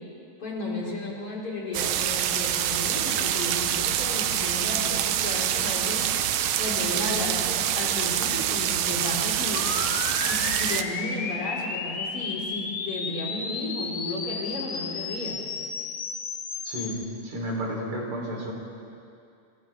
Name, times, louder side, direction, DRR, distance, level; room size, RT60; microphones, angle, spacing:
voice 1, 0.4-6.1 6.6-9.7 10.3-15.4, left 2 dB, 40° left, -6 dB, 5.5 m, -33 dB
sound 1, 1.7-10.8, right 10 dB, 70° right, 1.9 m, -26 dB
sound 2, 9.5-17.0, left 5 dB, 60° left, 1.3 m, -33 dB
voice 2, 16.6-18.5, equal, 55° right, -2 dB, 5.1 m, -32 dB
30.0 x 26.0 x 3.6 m, 2.5 s
omnidirectional pair, 3.9 m